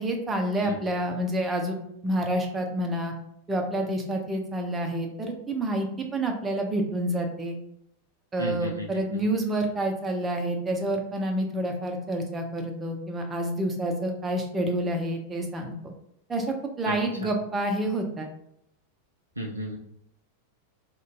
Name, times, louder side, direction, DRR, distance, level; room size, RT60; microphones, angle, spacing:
voice 1, 0.0-3.1 3.5-7.6 8.3-15.9 16.3-18.3, right 1 dB, 15° right, 3 dB, 0.5 m, -28 dB
voice 2, 8.4-9.2 16.8-16.9 17.2-17.3 19.4-19.8, right 1 dB, 85° right, 1 dB, 0.4 m, -34 dB
2.5 x 2.1 x 3.8 m, 0.76 s
figure-of-eight pair, 90°, 0 cm